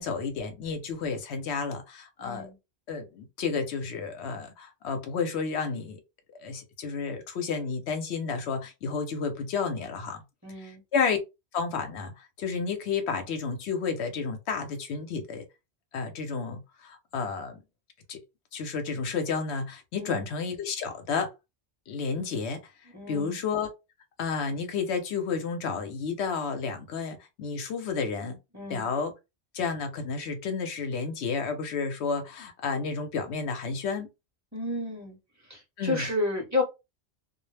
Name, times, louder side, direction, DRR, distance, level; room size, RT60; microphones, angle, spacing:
voice 1, 0.0-2.5 2.9-6.0 6.4-10.2 10.6-11.2 11.5-15.4 15.9-17.6 18.1-18.2 18.5-21.3 21.9-22.6 23.1-23.7 24.2-28.4 28.7-29.1 29.5-34.1 35.8-36.1, left 5 dB, 80° left, 0.9 m, -31 dB
voice 2, 2.2-2.6 10.4-10.8 20.0-20.3 22.9-23.4 28.5-28.9 34.5-35.2 35.4-36.6, left 2 dB, 15° right, 0.9 m, -31 dB
2.3 x 2.0 x 3.2 m
omnidirectional pair, 1.1 m